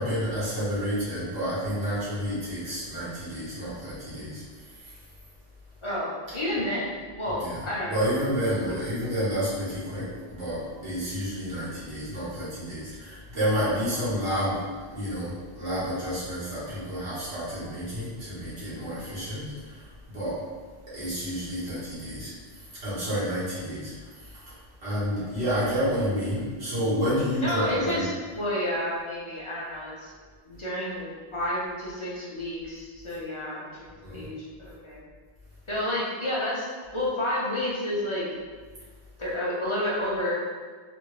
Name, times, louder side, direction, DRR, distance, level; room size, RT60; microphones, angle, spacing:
voice 1, 0.0-4.4 4.8-5.0 7.3-7.6 7.9-14.6 14.9-20.4 20.9-22.3 22.8-24.6 24.8-28.0 34.0-34.3, equal, 90° right, -11 dB, 1.5 m, -30 dB
voice 2, 5.8-8.0 8.6-8.7 27.4-30.1 30.4-33.6 34.1-35.0 35.7-36.7 36.9-38.3 39.2-40.4, left 1 dB, 35° left, -7 dB, 0.6 m, -30 dB
3.3 x 2.5 x 3.1 m, 1.5 s
omnidirectional pair, 1.1 m